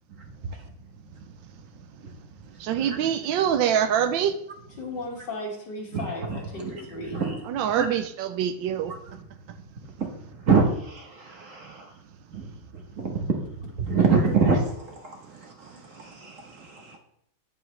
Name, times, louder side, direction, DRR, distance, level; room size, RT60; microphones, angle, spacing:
voice 1, 2.6-4.4 7.4-8.9, right 9 dB, 80° right, 10 dB, 1.3 m, -24 dB
voice 2, 4.8-7.2 14.0-14.1, left 2 dB, 65° left, -1 dB, 2.6 m, -35 dB
voice 3, 5.9-7.4 7.8-7.9 10.0-10.1 10.4-11.9 12.3-12.5 12.7-13.3 13.8-17.0, right 4 dB, 45° right, 2 dB, 1.3 m, -26 dB
9.4 x 7.9 x 3.3 m, 0.75 s
omnidirectional pair, 2.1 m